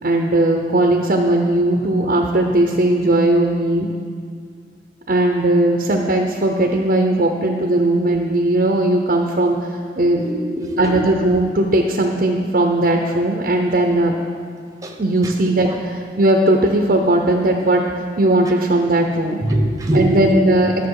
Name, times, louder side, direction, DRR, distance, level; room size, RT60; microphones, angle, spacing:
voice 1, 0.0-3.9 5.1-10.2 10.8-14.2 15.0-17.8 18.2-19.4 19.9-20.9, right 1 dB, 50° right, 2 dB, 0.7 m, -18 dB
voice 2, 10.2-11.1 14.8-15.0 15.2-15.3 15.6-15.8 19.4-20.3, right 1 dB, 20° right, 2 dB, 0.9 m, -22 dB
12.5 x 6.8 x 4.8 m, 2.2 s
head